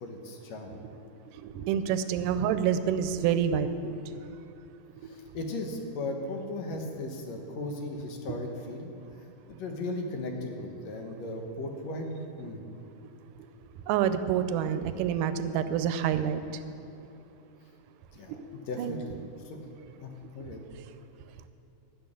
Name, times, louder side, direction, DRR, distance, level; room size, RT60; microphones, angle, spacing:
voice 1, 0.0-0.7 5.0-8.9 9.2-12.6 18.1-19.2 19.4-19.6 20.0-20.6, left 2 dB, 65° left, 3 dB, 2.1 m, -37 dB
voice 2, 1.4-4.0 13.9-16.4 18.8-19.0, right 8 dB, 85° right, 11 dB, 2.2 m, -27 dB
10.5 x 6.9 x 8.7 m, 2.8 s
omnidirectional pair, 3.7 m